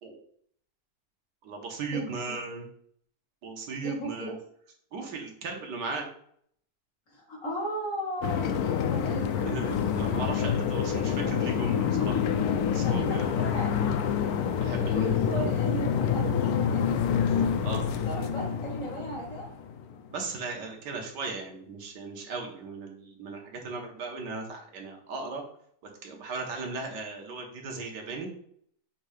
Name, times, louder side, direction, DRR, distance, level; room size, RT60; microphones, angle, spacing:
voice 1, 1.4-2.6 3.4-4.4 4.9-6.1 9.4-12.2 12.7-13.3 14.6-15.2 17.3-17.8 20.1-25.4 26.0-28.3, right 4 dB, 90° right, 2 dB, 1.7 m, -37 dB
voice 2, 3.8-4.4 7.1-8.6 8.9-9.5 12.8-14.0 14.9-17.0 18.1-19.5, right 1 dB, 50° left, -4 dB, 1.9 m, -36 dB
sound 1, 8.2-20.1, left 7 dB, 70° left, 1.1 m, -27 dB
7.0 x 2.7 x 4.9 m, 0.65 s
omnidirectional pair, 1.8 m